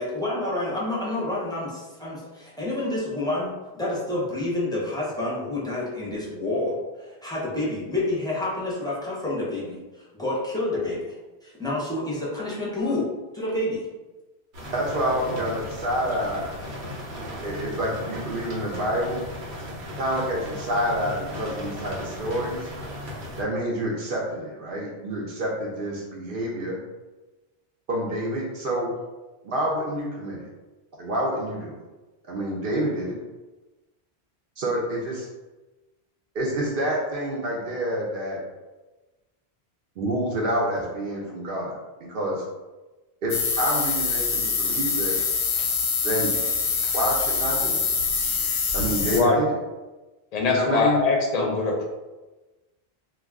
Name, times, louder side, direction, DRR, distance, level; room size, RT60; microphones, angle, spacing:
voice 1, 0.0-11.1 11.4-13.1 13.3-13.9, left 2 dB, 5° left, -7 dB, 0.5 m, -28 dB
sound 1, 14.5-23.4, equal, 90° right, 1.0 m, -36 dB
voice 2, 14.7-16.6 17.4-19.3 20.0-22.7 23.4-26.8 27.9-28.9 29.4-30.5 31.0-31.8 32.3-33.2 34.6-35.3 36.3-38.4 40.0-41.7 42.1-42.4 43.2-45.3 46.0-46.3 46.9-47.9 48.7-49.5 50.5-51.0, right 1 dB, 65° right, -3 dB, 0.7 m, -28 dB
sound 2, 43.3-49.2, left 5 dB, 90° left, 0.8 m, -25 dB
voice 3, 49.1-49.4 50.3-51.9, left 3 dB, 50° left, 0 dB, 0.6 m, -22 dB
2.3 x 2.2 x 3.4 m, 1.1 s
omnidirectional pair, 1.1 m